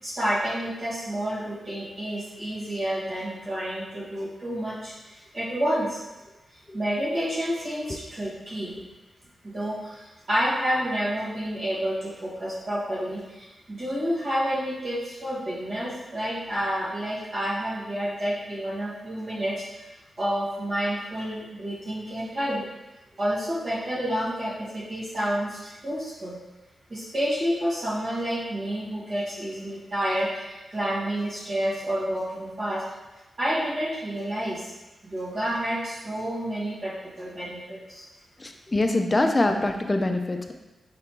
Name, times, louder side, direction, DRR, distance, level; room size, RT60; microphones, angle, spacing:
voice 1, 0.0-6.0 6.7-8.8 9.4-19.8 20.2-22.6 23.2-26.4 26.9-32.8 33.4-34.7 35.0-38.0, equal, 40° right, -8 dB, 1.2 m, -29 dB
voice 2, 38.4-40.5, left 2 dB, 20° left, 5 dB, 0.3 m, -24 dB
4.4 x 2.9 x 3.3 m, 1.1 s
wide cardioid pair, 155°, 0 cm